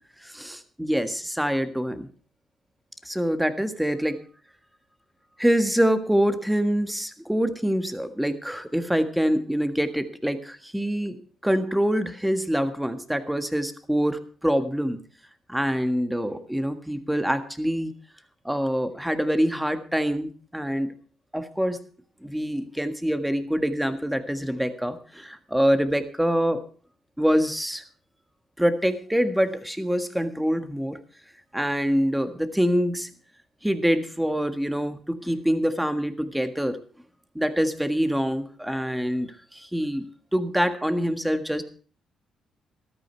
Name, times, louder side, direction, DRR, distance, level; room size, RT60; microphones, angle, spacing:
voice 1, 0.2-2.1 3.0-4.2 5.4-11.2 11.4-15.0 15.5-17.9 18.4-20.9 21.3-21.8 22.2-26.6 27.2-27.8 28.6-31.0 31.5-33.1 33.6-36.8 37.3-41.6, equal, 5° right, 9 dB, 1.6 m, -25 dB
13.5 x 13.0 x 4.5 m, 0.42 s
cardioid pair, 90°, 0 cm